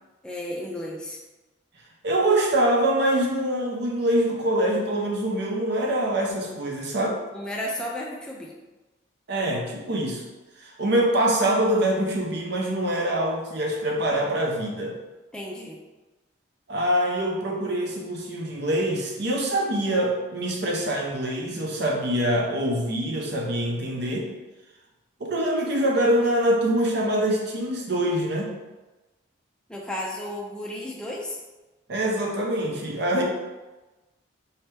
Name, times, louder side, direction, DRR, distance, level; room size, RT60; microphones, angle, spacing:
voice 1, 0.2-1.2 7.3-8.5 15.3-15.8 29.7-31.4, left 1 dB, 5° left, -3 dB, 0.4 m, -33 dB
voice 2, 2.0-7.2 9.3-10.2 10.6-14.9 16.7-24.3 25.2-28.6 31.9-33.2, right 1 dB, 55° right, -1 dB, 0.7 m, -24 dB
4.3 x 2.8 x 3.3 m, 1.1 s
head